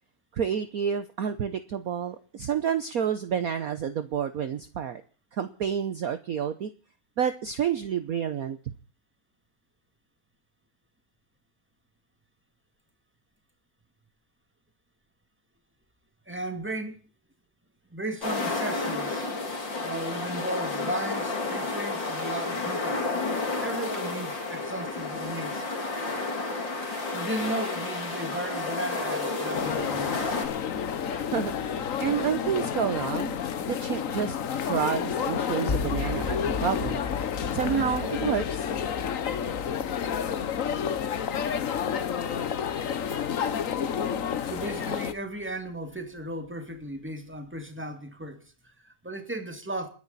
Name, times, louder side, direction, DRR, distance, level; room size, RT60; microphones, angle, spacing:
voice 1, 0.3-5.0 5.3-6.7 7.2-8.6 31.1-37.0 37.5-38.7, right 8 dB, 55° right, 1.2 m, -29 dB
voice 2, 16.3-17.0 17.9-19.3 19.8-23.1 23.6-25.8 27.1-30.2 44.5-49.9, right 1 dB, 5° right, 2.2 m, -35 dB
sound 1, 18.2-30.5, left 3 dB, 70° left, 3.9 m, -31 dB
sound 2, 29.5-45.1, left 8 dB, 50° left, 1.2 m, -30 dB
sound 3, 35.7-45.7, left 5 dB, 25° left, 1.2 m, -38 dB
30.0 x 10.0 x 4.2 m
omnidirectional pair, 2.1 m